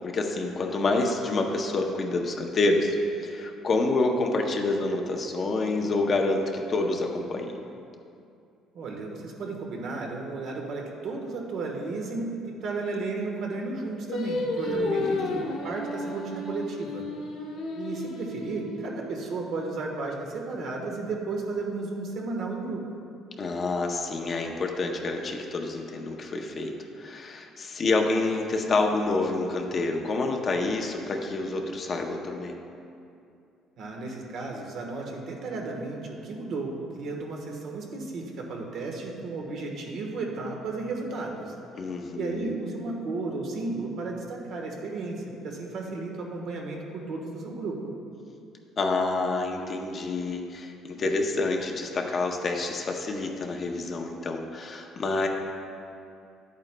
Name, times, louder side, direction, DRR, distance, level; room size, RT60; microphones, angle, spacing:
voice 1, 0.0-3.0 3.2-7.6 14.7-15.4 23.4-32.6 41.7-42.5 48.8-55.3, left 3 dB, 30° left, 2 dB, 0.6 m, -28 dB
voice 2, 8.7-17.0 17.8-22.9 27.8-28.0 33.8-41.5 42.1-47.9, right 3 dB, 55° right, 0 dB, 1.2 m, -34 dB
Singing, 14.1-19.4, left 2 dB, 70° left, 1.2 m, -32 dB
11.0 x 8.8 x 2.2 m, 2.6 s
cardioid pair, 155°, 0 cm